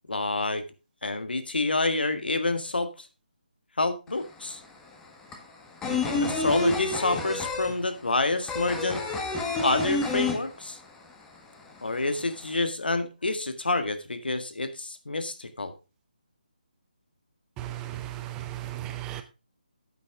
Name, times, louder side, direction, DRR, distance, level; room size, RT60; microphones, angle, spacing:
voice 1, 0.1-0.6 1.0-3.1 3.8-4.6 5.8-9.0 9.6-10.8 11.8-15.7, left 2 dB, 85° left, 10 dB, 1.8 m, -28 dB
sound 1, 4.1-4.2 4.4-11.0 11.3-11.4 11.7-12.5, left 3 dB, 10° left, 1.4 m, -29 dB
voice 2, 17.6-19.2, right 14 dB, 10° right, 10 dB, 0.7 m, -36 dB
9.8 x 8.5 x 3.6 m, 0.29 s
figure-of-eight pair, 160°, 5 cm